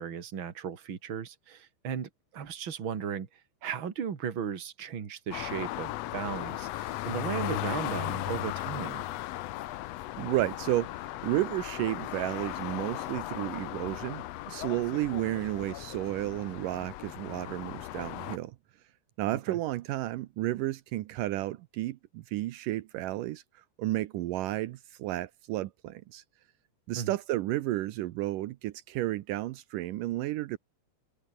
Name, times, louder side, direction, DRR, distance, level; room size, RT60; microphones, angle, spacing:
voice 1, 0.0-3.3 3.6-9.1 19.5-19.6 27.0-27.1, right 7 dB, 40° right, 2.6 m, -36 dB
sound 1, 5.3-18.4, left 15 dB, 80° left, 1.5 m, -37 dB
voice 2, 10.2-18.6 19.2-23.4 23.8-26.2 26.9-30.6, right 16 dB, 80° right, 2.4 m, -32 dB
omnidirectional pair, 3.9 m